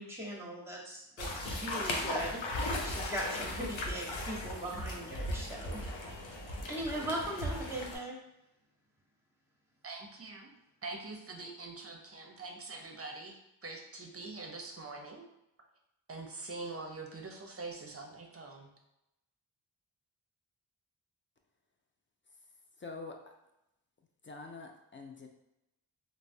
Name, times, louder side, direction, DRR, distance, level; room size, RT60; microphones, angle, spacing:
voice 1, 0.0-5.8 6.7-8.2, right 1 dB, 5° right, -3 dB, 0.8 m, -39 dB
sound 1, 1.2-8.0, left 1 dB, 85° left, 0.6 m, -37 dB
voice 2, 9.8-10.5 10.8-15.3 16.1-18.7, right 3 dB, 30° right, 2 dB, 0.6 m, -44 dB
voice 3, 22.8-23.3 24.2-25.3, left 3 dB, 30° left, 2 dB, 0.4 m, -46 dB
3.1 x 2.1 x 2.6 m, 0.87 s
cardioid pair, 45°, 45 cm